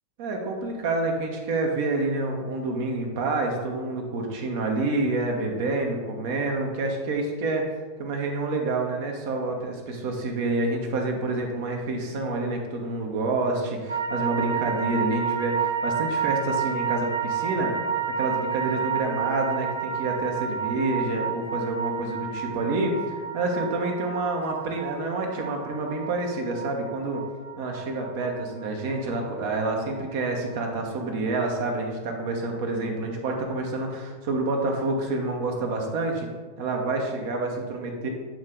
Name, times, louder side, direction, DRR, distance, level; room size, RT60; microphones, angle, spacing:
voice 1, 0.2-7.7 8.0-17.7 18.2-27.2 27.6-36.3 36.6-38.1, right 2 dB, 50° right, 2 dB, 1.1 m, -28 dB
sound 1, 13.9-30.2 30.5-30.6, right 7 dB, 70° right, 0.5 m, -30 dB
8.8 x 3.2 x 3.8 m, 1.5 s
figure-of-eight pair, 90°, 0 cm